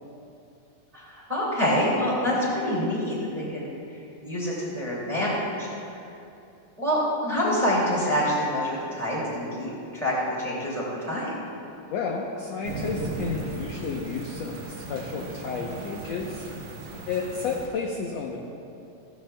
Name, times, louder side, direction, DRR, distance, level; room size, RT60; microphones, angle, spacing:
voice 1, 0.9-3.8 4.2-5.7 6.8-11.3, equal, 15° right, -6 dB, 1.9 m, -26 dB
voice 2, 11.9-16.5 17.1-18.4, left 4 dB, 80° left, -1 dB, 1.5 m, -32 dB
sound 1, 12.6-17.7, right 2 dB, 60° right, 2.0 m, -36 dB
15.5 x 14.5 x 2.3 m, 2.7 s
omnidirectional pair, 4.0 m